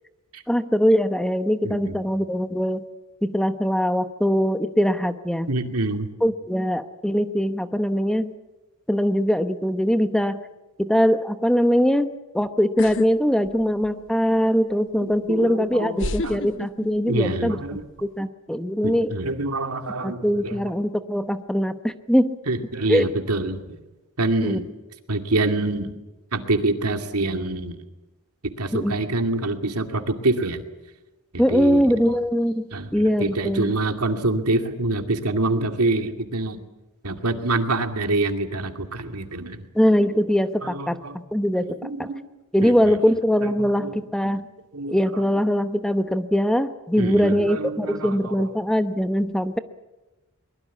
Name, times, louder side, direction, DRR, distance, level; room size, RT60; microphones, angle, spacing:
voice 1, 0.5-2.9 3.2-5.5 6.2-8.3 8.9-10.4 10.8-17.6 18.0-19.1 20.0-22.4 22.9-23.0 24.4-24.6 28.7-29.0 31.4-32.6 32.9-33.7 39.7-41.0 41.3-41.8 42.5-44.5 44.9-49.6, equal, 5° left, 10 dB, 0.9 m, -22 dB
voice 2, 1.6-2.0 5.5-6.1 13.4-13.5 13.9-14.0 15.0-16.4 17.1-17.8 18.8-20.6 22.5-23.8 24.2-24.7 25.1-25.9 26.3-27.8 28.4-30.6 31.3-31.8 32.7-36.6 37.0-39.6 40.6-41.2 41.8-42.2 42.6-43.0 43.4-43.9 44.2-44.3 44.7-45.2 47.0-48.5, right 2 dB, 85° right, 6 dB, 2.4 m, -26 dB
sound 1, 12.8-13.1 13.5-14.1 15.1-15.2 16.0-17.3 17.6-18.1, left 2 dB, 60° left, 1.0 m, -30 dB
23.0 x 21.0 x 8.4 m, 1.1 s
head